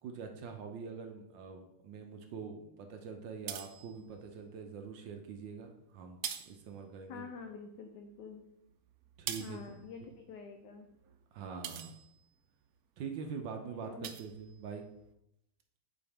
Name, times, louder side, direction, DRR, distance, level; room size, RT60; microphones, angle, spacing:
voice 1, 0.0-6.2 6.5-7.3 9.2-9.6 11.3-12.0 13.0-14.9, right 5 dB, 70° right, 4 dB, 1.4 m, -44 dB
sound 1, 3.2-4.4 5.1-5.7 6.0-7.5 7.8-12.7 13.1-13.4 13.7-15.1, right 9 dB, 90° right, 0.8 m, -46 dB
voice 2, 7.1-8.4 9.4-10.9 13.8-14.1, left 5 dB, 70° left, 4 dB, 1.2 m, -47 dB
10.0 x 4.2 x 3.5 m, 0.82 s
omnidirectional pair, 2.2 m